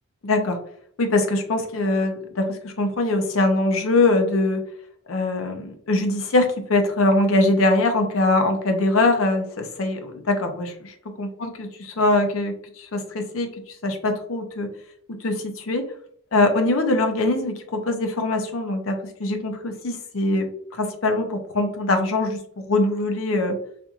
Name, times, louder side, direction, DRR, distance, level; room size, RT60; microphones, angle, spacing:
voice 1, 0.2-0.6 1.0-4.6 5.1-13.5 13.8-14.7 15.2-15.8 16.3-20.5 20.8-23.6, left 2 dB, 65° left, 5 dB, 0.6 m, -22 dB
4.3 x 2.6 x 2.4 m, 0.64 s
head